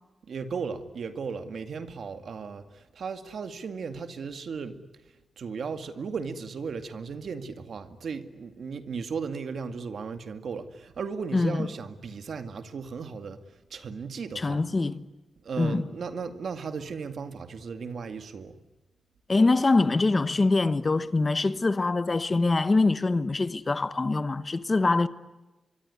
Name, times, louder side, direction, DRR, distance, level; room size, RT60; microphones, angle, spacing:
voice 1, 0.2-4.8 5.4-14.6 15.4-18.6, right 5 dB, 70° right, 2.2 m, -36 dB
voice 2, 11.3-11.7 14.4-15.1 15.6-15.8 19.3-25.1, left 3 dB, 30° left, 1.1 m, -24 dB
24.5 x 24.0 x 9.7 m
wide cardioid pair, 100°, 0 cm